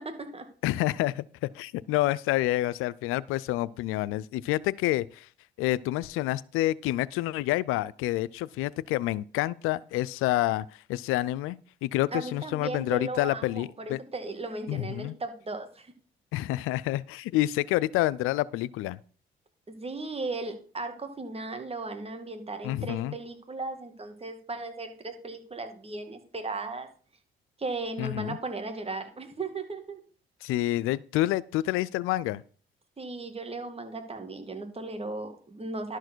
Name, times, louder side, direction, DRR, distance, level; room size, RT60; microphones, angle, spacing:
voice 1, 0.0-0.5 12.1-15.9 19.7-26.9 27.6-30.0 33.0-36.0, right 3 dB, 30° right, 2.0 m, -36 dB
voice 2, 0.6-5.3 5.6-14.0 14.7-15.2 16.3-19.0 22.6-23.1 28.0-28.4 30.4-32.4, left 16 dB, 85° left, 0.4 m, -28 dB
11.5 x 4.6 x 6.1 m
supercardioid pair, 75°, 21 cm